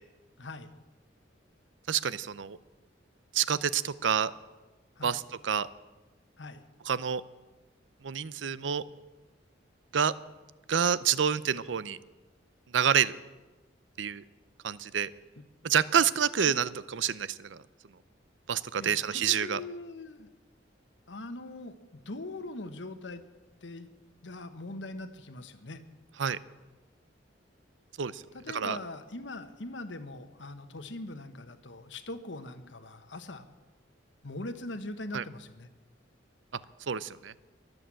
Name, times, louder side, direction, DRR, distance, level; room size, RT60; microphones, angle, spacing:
voice 1, 0.4-0.7 5.0-5.2 6.4-6.6 16.5-16.6 18.7-20.3 21.1-23.2 23.6-23.9 24.2-25.8 28.3-33.5 34.2-35.7, left 2 dB, 75° left, 9 dB, 1.2 m, -41 dB
voice 2, 1.9-2.6 3.3-4.3 5.0-5.7 6.9-7.2 8.0-8.8 9.9-10.1 10.7-12.0 12.7-13.1 14.0-14.2 14.6-15.1 15.6-17.6 18.5-19.6 26.2-26.4 28.0-28.2 28.5-28.8 35.1-35.2 36.9-37.3, right 8 dB, 75° right, 17 dB, 0.6 m, -28 dB
22.5 x 7.9 x 7.6 m, 1.2 s
head